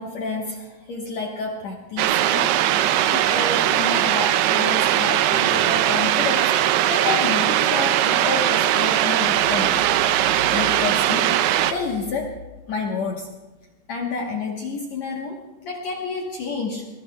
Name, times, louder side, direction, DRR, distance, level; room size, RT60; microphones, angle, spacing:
voice 1, 0.0-2.6 3.1-6.5 6.9-9.8 10.2-12.3 12.7-13.3 13.9-16.9, left 4 dB, 75° left, 0 dB, 1.6 m, -29 dB
sound 1, 2.0-11.7, right 12 dB, 80° right, 2.6 m, -20 dB
23.5 x 19.5 x 2.3 m, 1.1 s
omnidirectional pair, 4.9 m